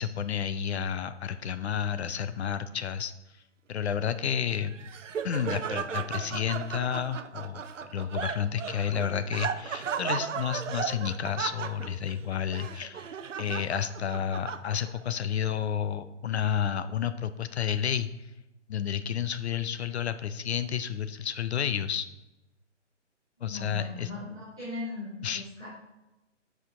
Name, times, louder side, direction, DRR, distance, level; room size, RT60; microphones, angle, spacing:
voice 1, 0.0-3.1 3.7-4.7 5.2-7.6 7.9-13.0 13.4-18.1 18.7-22.1 23.4-24.1 25.2-25.4, left 8 dB, 60° left, 11 dB, 0.6 m, -31 dB
Laughter, 4.5-15.0, right 7 dB, 85° right, 0.6 m, -36 dB
voice 2, 23.5-25.7, left 2 dB, 5° right, -14 dB, 0.4 m, -39 dB
8.1 x 5.1 x 3.7 m, 1.0 s
hypercardioid pair, 145°, 37 cm